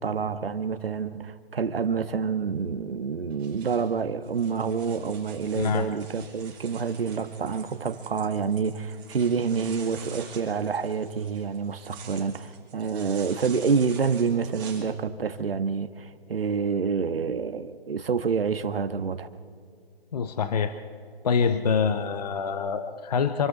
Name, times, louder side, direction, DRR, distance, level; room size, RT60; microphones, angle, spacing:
voice 1, 0.0-19.3, right 5 dB, 65° right, 1.4 m, -28 dB
sound 1, 3.3-14.8, right 6 dB, 15° right, 5.0 m, -47 dB
voice 2, 5.5-5.9 20.1-20.7 21.2-23.5, left 6 dB, 40° left, 0.9 m, -25 dB
27.0 x 13.5 x 4.0 m
hypercardioid pair, 155°, 31 cm